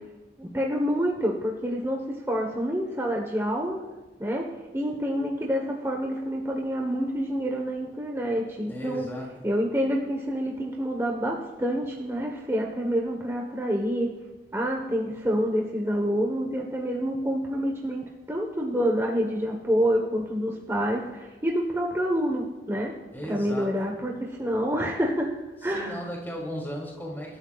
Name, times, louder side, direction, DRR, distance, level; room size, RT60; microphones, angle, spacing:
voice 1, 0.4-3.8 4.2-4.5 4.7-9.0 9.4-14.1 14.5-22.9 23.3-24.1 24.4-25.3 25.6-26.0, equal, 15° right, 0 dB, 1.2 m, -27 dB
voice 2, 8.7-9.3 23.1-23.9 25.6-27.4, equal, 10° left, -1 dB, 2.9 m, -36 dB
27.5 x 12.5 x 2.4 m, 1.2 s
head